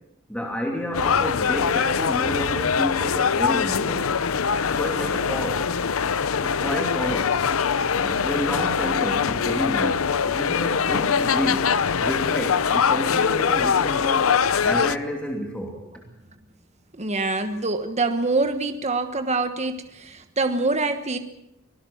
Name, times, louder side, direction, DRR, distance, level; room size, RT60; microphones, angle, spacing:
voice 1, 0.3-4.1 4.7-5.6 6.4-7.4 7.9-11.7 12.0-14.3 14.6-15.8, equal, 5° left, 0 dB, 2.9 m, -30 dB
sound 1, 0.9-15.0, left 6 dB, 90° left, 0.7 m, -23 dB
voice 2, 17.0-21.2, right 3 dB, 35° right, 8 dB, 1.3 m, -25 dB
24.5 x 19.0 x 7.2 m, 0.85 s
head